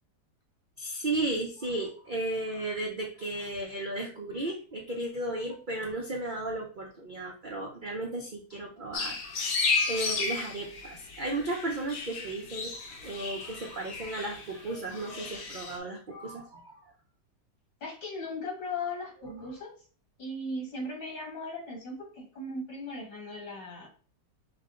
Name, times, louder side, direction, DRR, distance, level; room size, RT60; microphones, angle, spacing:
voice 1, 0.8-9.2 9.6-16.8 19.2-19.6, right 2 dB, 70° right, 0 dB, 0.4 m, -35 dB
sound 1, 8.9-15.8, left 4 dB, 75° left, 1.4 m, -33 dB
voice 2, 17.8-19.7 20.2-23.9, left 2 dB, 90° left, -2 dB, 2.5 m, -37 dB
5.7 x 2.2 x 3.6 m, 0.39 s
omnidirectional pair, 1.9 m